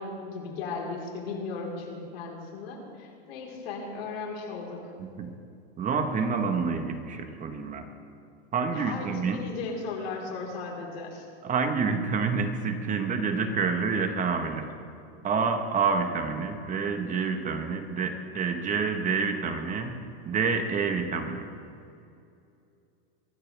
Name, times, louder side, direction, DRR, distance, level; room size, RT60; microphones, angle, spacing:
voice 1, 0.0-4.8 8.7-11.3, left 4 dB, 75° left, -2 dB, 4.3 m, -36 dB
voice 2, 5.0-5.3 5.8-7.9 8.5-9.4 11.4-14.7 15.2-19.9 20.2-21.5, right 5 dB, 25° right, 6 dB, 1.4 m, -28 dB
24.0 x 15.0 x 3.5 m, 2.5 s
supercardioid pair, 125°, 30 cm